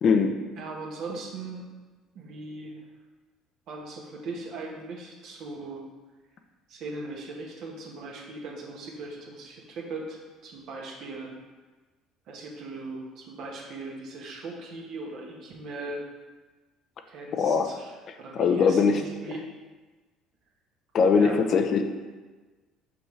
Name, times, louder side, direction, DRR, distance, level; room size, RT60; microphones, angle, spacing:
voice 1, 0.0-0.4 17.3-17.7 18.4-19.0 20.9-21.8, left 5 dB, 55° left, 6 dB, 0.6 m, -21 dB
voice 2, 0.6-1.7 2.1-2.8 3.7-5.8 6.7-11.3 12.3-16.0 17.1-19.4 21.1-21.4, right 3 dB, 65° right, -1 dB, 1.3 m, -39 dB
5.5 x 5.3 x 3.2 m, 1.3 s
supercardioid pair, 80°, 0 cm